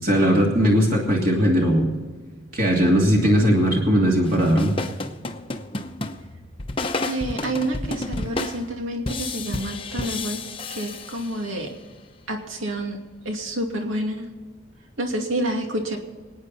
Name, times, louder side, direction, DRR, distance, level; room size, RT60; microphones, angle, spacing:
voice 1, 0.0-1.9 2.5-4.7, equal, 45° right, -2 dB, 2.8 m, -19 dB
sound 1, 4.2-11.7, left 2 dB, 25° left, 0.8 m, -31 dB
voice 2, 7.0-10.4 10.7-11.7 12.3-13.0 13.2-14.3 15.0-16.0, right 1 dB, 75° right, 2 dB, 2.6 m, -28 dB
25.5 x 9.3 x 4.2 m, 1.5 s
head